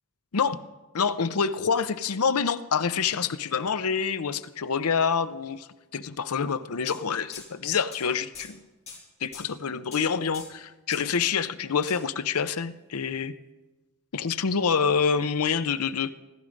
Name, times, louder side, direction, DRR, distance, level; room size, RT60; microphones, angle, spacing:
voice 1, 0.9-8.6 9.2-13.3 14.1-16.1, left 6 dB, 80° left, 13 dB, 0.7 m, -27 dB
sound 1, 6.9-7.0 7.3-7.5 7.9-8.0 8.3-8.5 8.9-9.0 9.3-9.5 9.9-10.1 10.3-10.5 10.9-11.1 11.9-12.0, left 5 dB, 30° left, 5.5 m, -43 dB
14.5 x 14.5 x 5.2 m, 1.1 s
head